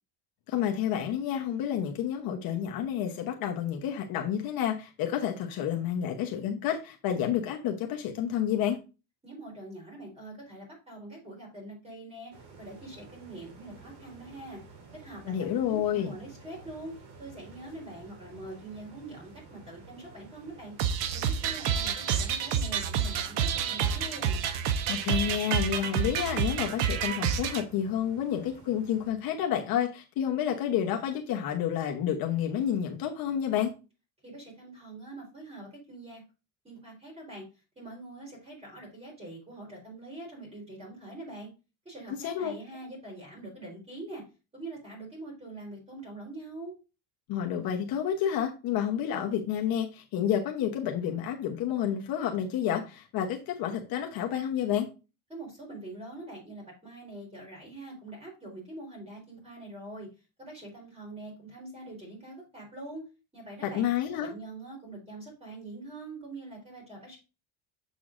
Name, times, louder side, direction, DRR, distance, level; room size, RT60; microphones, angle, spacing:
voice 1, 0.5-8.8 15.3-16.1 24.9-33.7 42.2-42.5 47.3-54.9 63.6-64.3, left 9 dB, 50° left, 1.0 m, -30 dB
voice 2, 9.2-14.6 14.9-15.4 15.6-20.7 21.1-24.4 34.2-36.2 36.6-37.4 37.8-41.5 41.8-44.2 44.5-46.8 55.3-60.1 60.4-63.1 63.3-63.8 64.1-67.2, right 2 dB, 15° right, 3.9 m, -44 dB
sound 1, 12.3-29.1, right 4 dB, 60° right, 2.3 m, -52 dB
sound 2, 20.8-27.6, right 8 dB, 75° right, 0.9 m, -29 dB
7.2 x 6.9 x 2.5 m
cardioid pair, 170°, 44 cm